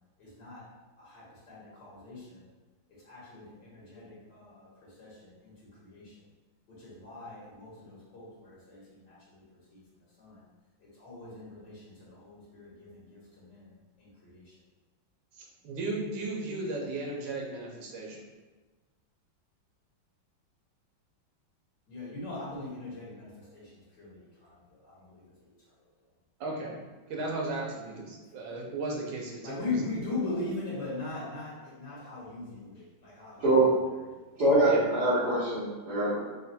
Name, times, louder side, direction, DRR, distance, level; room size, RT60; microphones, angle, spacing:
voice 1, 0.2-0.7 1.0-2.4 3.0-5.5 5.8-6.1 6.7-9.4 9.7-9.8 10.2-10.4 10.8-13.7 14.0-14.5 21.9-25.2 29.4-33.5 34.1-34.2, left 2 dB, 65° left, -7 dB, 1.7 m, -40 dB
voice 2, 15.4-18.2 26.4-26.7 27.1-29.8 34.7-34.8, right 2 dB, 85° right, -1 dB, 1.5 m, -35 dB
voice 3, 34.4-36.2, right 2 dB, 55° right, -12 dB, 1.6 m, -24 dB
4.2 x 2.2 x 4.1 m, 1.2 s
omnidirectional pair, 2.1 m